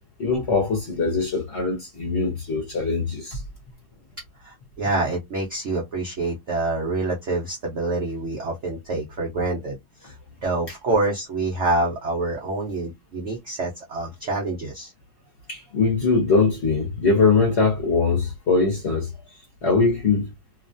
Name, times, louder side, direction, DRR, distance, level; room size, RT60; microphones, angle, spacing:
voice 1, 0.2-3.4 15.5-19.1 19.6-20.3, left 4 dB, 50° left, 0.9 m, -21 dB
voice 2, 4.4-10.2 10.4-14.9, right 2 dB, 75° right, 0.6 m, -26 dB
3.0 x 2.3 x 2.5 m
omnidirectional pair, 2.0 m